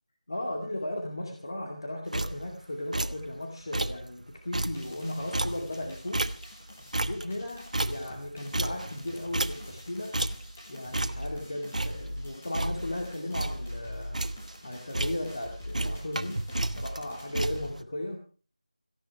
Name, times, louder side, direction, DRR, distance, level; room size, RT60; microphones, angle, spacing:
voice 1, 0.3-6.2 7.0-10.2 10.7-14.2 14.6-18.2, left 1 dB, 40° left, 2 dB, 2.3 m, -36 dB
sound 1, 2.1-2.6 2.9-3.3 3.6-4.1 4.4-6.7 6.9-9.9 10.1-10.6 10.9-11.4 11.7-13.0 13.3-13.7 14.0-14.6 14.9-15.5 15.7-17.8, right 1 dB, 75° right, 1.2 m, -32 dB
sound 2, 4.7-17.7, left 1 dB, 10° left, 1.7 m, -44 dB
18.0 x 15.0 x 4.7 m, 0.38 s
figure-of-eight pair, 180°, 4 cm